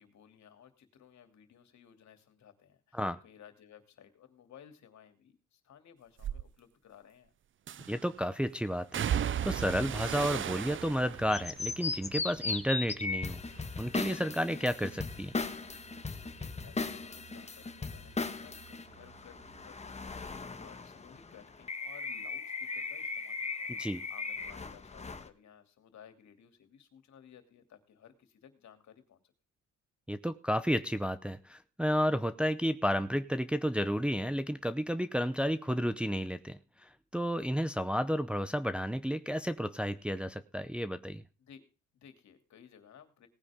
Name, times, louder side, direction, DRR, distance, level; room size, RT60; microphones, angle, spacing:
voice 1, 0.0-7.3 16.2-29.3 41.4-41.6 41.9-43.3, left 8 dB, 65° left, 2.9 m, -57 dB
sound 1, 6.2-6.4 7.7-8.1 8.9-13.2 13.5-14.1 14.5-17.8 18.0-19.2 19.5-19.6, right 9 dB, 40° right, 0.5 m, -38 dB
voice 2, 7.9-13.4 13.8-15.3 23.7-24.0 30.1-41.2, equal, 5° right, 0.7 m, -32 dB
sound 2, 11.3-25.3, left 4 dB, 20° left, 1.5 m, -38 dB
18.5 x 9.7 x 3.6 m
cardioid pair, 90°, 30 cm